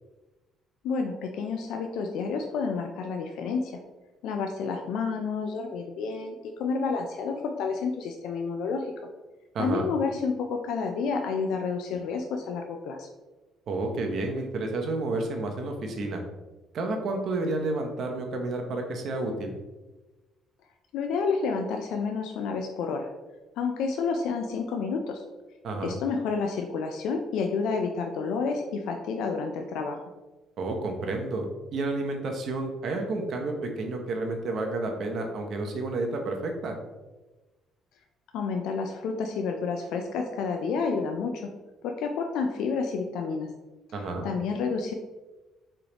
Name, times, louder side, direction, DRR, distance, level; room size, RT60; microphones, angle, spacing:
voice 1, 0.8-3.8 4.2-8.9 9.6-13.1 20.9-23.1 23.6-25.2 25.8-30.0 38.3-41.5 41.8-43.5 44.2-44.9, left 5 dB, 80° left, 3 dB, 0.3 m, -30 dB
voice 2, 9.5-9.9 13.7-16.2 16.7-19.6 25.6-26.0 30.6-36.7 43.9-44.3, right 2 dB, 50° right, 3 dB, 0.7 m, -30 dB
3.8 x 3.3 x 2.9 m, 1.1 s
cardioid pair, 150°, 0 cm